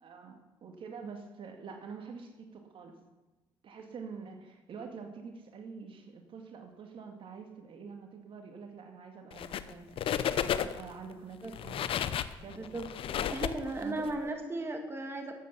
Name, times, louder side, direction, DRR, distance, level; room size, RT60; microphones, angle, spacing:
voice 1, 0.0-3.0 3.6-9.9 10.3-11.8 12.4-12.7 13.1-13.2 13.8-14.3, right 5 dB, 60° right, 4 dB, 2.0 m, -46 dB
sound 1, 9.3-9.7 10.0-10.9 11.4-14.1, left 9 dB, 65° left, 0.7 m, -33 dB
voice 2, 12.6-12.9 13.3-15.3, right 2 dB, 25° right, 3 dB, 2.0 m, -36 dB
12.5 x 8.5 x 6.9 m, 1.2 s
supercardioid pair, 75°, 10 cm